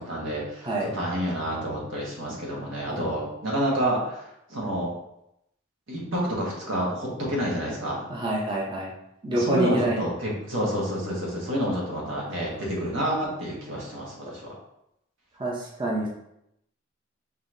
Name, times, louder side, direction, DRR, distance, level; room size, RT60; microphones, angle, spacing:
voice 1, 0.0-4.2 4.5-4.9 5.9-8.1 9.3-14.5, equal, 85° right, -4 dB, 1.5 m, -29 dB
voice 2, 8.1-8.9 9.2-10.0 15.4-16.1, right 1 dB, 25° right, -3 dB, 0.7 m, -27 dB
5.4 x 3.1 x 2.7 m, 0.79 s
head